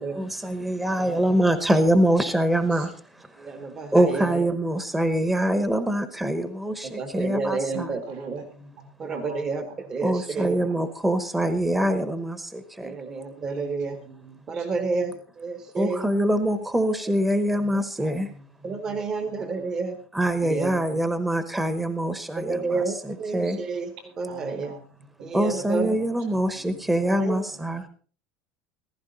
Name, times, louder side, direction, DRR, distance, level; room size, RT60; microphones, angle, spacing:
voice 1, 0.0-8.0 10.0-12.9 15.8-18.3 19.1-19.5 20.1-23.6 25.3-27.9, right 1 dB, 5° right, 10 dB, 1.0 m, -24 dB
voice 2, 3.4-4.4 6.8-8.5 9.0-10.8 12.8-14.0 14.5-16.0 18.6-20.0 20.4-20.7 22.4-24.7 25.2-25.9 27.1-27.4, right 4 dB, 30° right, 9 dB, 1.1 m, -30 dB
voice 3, 7.7-9.5 13.4-14.7 17.5-19.0 19.3-19.6 20.9-21.0 24.3-25.3 25.6-26.4 26.7-27.1, right 2 dB, 75° right, 4 dB, 7.0 m, -46 dB
15.5 x 15.0 x 4.0 m, 0.41 s
cardioid pair, 150°, 2 cm